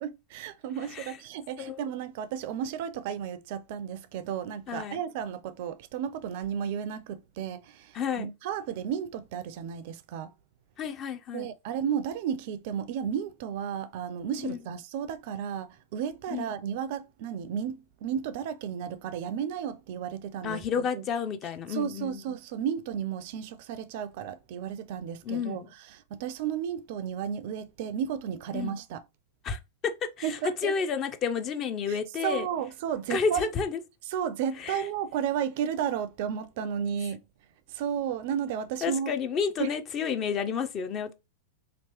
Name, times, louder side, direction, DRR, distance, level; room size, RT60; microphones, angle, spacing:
voice 1, 0.0-10.3 11.3-20.6 20.9-21.0 21.7-25.6 26.1-29.0 30.2-30.7 31.9-32.0 32.2-33.5 34.1-37.2 37.7-39.1 39.6-39.7, right 8 dB, 50° right, 0.4 m, -33 dB
voice 2, 4.7-5.0 7.9-8.3 10.8-11.5 14.4-14.6 16.3-16.5 20.4-22.2 25.2-25.7 28.5-28.8 29.4-32.5 33.1-33.8 34.6-34.8 38.8-41.1, left 6 dB, 35° left, 0.5 m, -31 dB
3.0 x 3.0 x 2.9 m
figure-of-eight pair, 95°, 0 cm